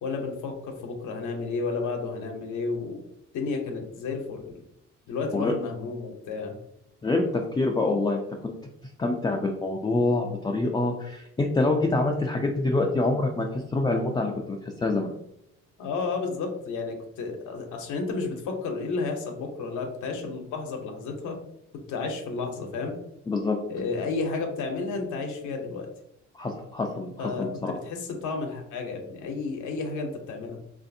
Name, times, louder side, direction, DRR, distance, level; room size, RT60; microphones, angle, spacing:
voice 1, 0.0-3.0 3.3-4.4 5.1-6.5 15.8-21.4 21.9-22.9 23.7-25.9 27.2-30.6, left 4 dB, 85° left, 3 dB, 0.7 m, -32 dB
voice 2, 7.0-8.5 9.0-15.1 23.3-23.6 26.3-27.7, left 2 dB, 15° left, 1 dB, 0.3 m, -26 dB
3.2 x 2.6 x 2.6 m, 0.80 s
cardioid pair, 90°, 30 cm